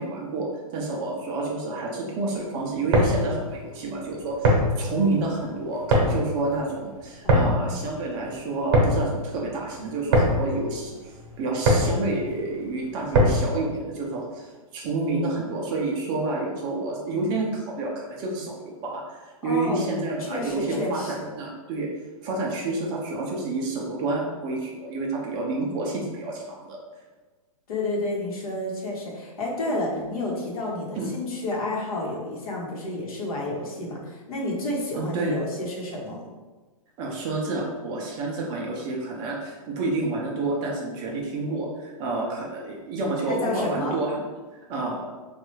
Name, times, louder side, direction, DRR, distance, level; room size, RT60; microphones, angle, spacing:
voice 1, 0.0-21.9 22.2-26.8 29.9-30.0 31.0-31.2 35.0-35.4 37.0-44.2 44.5-45.1, right 2 dB, 25° right, -2 dB, 0.4 m, -29 dB
sound 1, 2.7-13.6, equal, 45° right, 0.8 m, -24 dB
voice 2, 7.2-7.7 19.4-19.8 20.2-21.3 27.7-36.2 43.3-44.0, left 2 dB, 70° left, -2 dB, 1.0 m, -30 dB
3.1 x 2.3 x 3.1 m, 1.3 s
hypercardioid pair, 150°, 19 cm